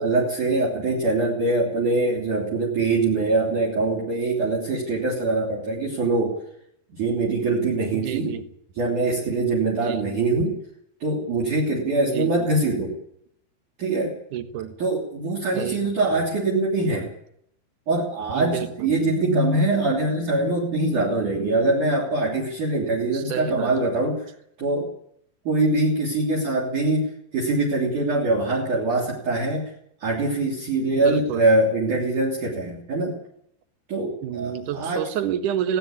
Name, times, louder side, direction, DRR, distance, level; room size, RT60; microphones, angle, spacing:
voice 1, 0.0-6.4 6.9-8.3 8.8-10.5 11.0-13.0 13.8-14.2 14.8-17.1 17.9-24.3 24.6-24.9 25.5-29.7 30.0-33.2 33.9-35.0, right 2 dB, 45° right, 1 dB, 4.1 m, -23 dB
voice 2, 7.9-8.5 9.8-10.2 12.1-12.5 14.3-14.7 15.5-16.2 18.4-19.1 23.1-23.7 30.9-31.5 34.2-35.8, right 9 dB, 70° right, 9 dB, 2.0 m, -29 dB
19.0 x 17.5 x 8.5 m, 0.72 s
omnidirectional pair, 5.5 m